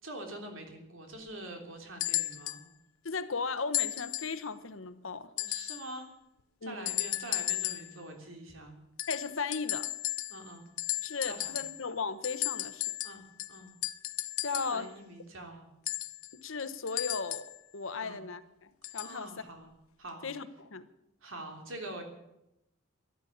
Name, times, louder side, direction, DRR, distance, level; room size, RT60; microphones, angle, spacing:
voice 1, 0.0-2.6 5.4-6.1 6.6-8.8 10.3-10.7 11.2-11.6 13.0-13.7 14.5-15.7 18.0-18.2 19.0-19.7 20.0-20.3 21.2-22.0, right 1 dB, 70° right, 4 dB, 3.3 m, -45 dB
sound 1, 2.0-2.6 3.7-4.4 5.4-5.9 6.9-8.0 9.0-10.5 10.8-11.9 12.2-14.8 15.9-17.6 18.8-19.2 20.1-20.2, left 15 dB, 90° left, 0.6 m, -35 dB
voice 2, 3.0-5.3 6.6-6.9 9.1-9.9 11.0-13.0 14.4-14.9 16.3-19.3 20.2-20.9, left 4 dB, 70° left, 12 dB, 1.0 m, -36 dB
13.5 x 11.5 x 8.7 m, 0.86 s
head